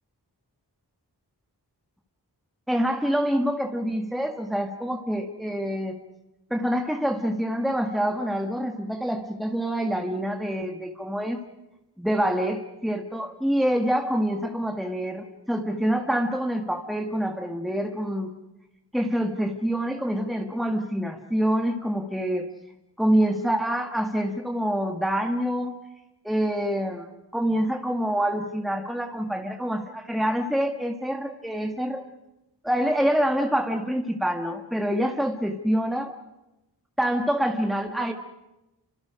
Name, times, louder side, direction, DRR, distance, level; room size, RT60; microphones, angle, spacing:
voice 1, 2.7-6.0 6.5-11.4 12.0-18.3 18.9-22.5 23.0-25.8 26.2-32.0 32.6-36.1 37.0-38.1, equal, ahead, 3 dB, 1.9 m, -26 dB
28.5 x 25.5 x 5.2 m, 0.94 s
wide cardioid pair, 50°, 41 cm